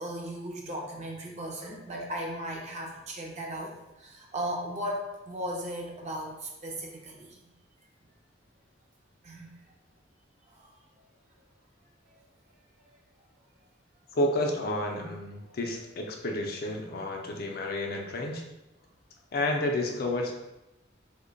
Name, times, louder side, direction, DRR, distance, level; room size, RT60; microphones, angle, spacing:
voice 1, 0.0-7.3 9.2-9.5, equal, 40° right, 0 dB, 0.6 m, -36 dB
voice 2, 14.1-18.4 19.3-20.3, left 1 dB, 55° left, 1 dB, 0.5 m, -30 dB
2.9 x 2.1 x 3.8 m, 0.94 s
head